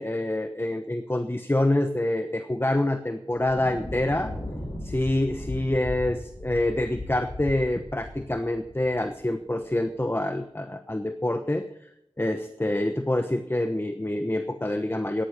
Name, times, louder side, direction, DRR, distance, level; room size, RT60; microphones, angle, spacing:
voice 1, 0.0-4.3 4.8-11.7 12.2-15.2, left 1 dB, 20° left, 8 dB, 1.0 m, -26 dB
Thunder, 3.3-10.0, left 1 dB, 55° left, 4.9 m, -38 dB
15.0 x 10.0 x 5.8 m, 0.81 s
wide cardioid pair, 45°, 10 cm